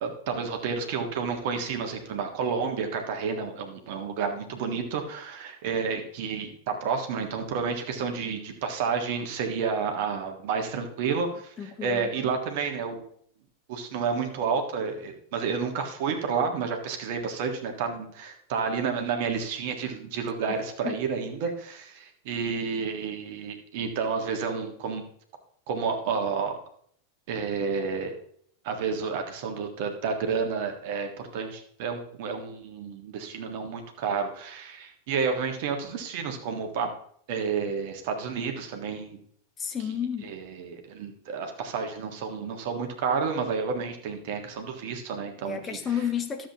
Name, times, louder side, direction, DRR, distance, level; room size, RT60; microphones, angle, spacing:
voice 1, 0.0-13.0 13.7-25.0 25.7-26.6 27.3-28.1 28.6-36.9 37.3-39.2 40.2-45.6, right 5 dB, 50° right, 1.5 m, -30 dB
voice 2, 11.6-12.3 20.4-21.0 39.6-40.3 45.4-46.5, left 8 dB, 20° left, 1.0 m, -32 dB
13.0 x 7.5 x 2.9 m
figure-of-eight pair, 90°, 0 cm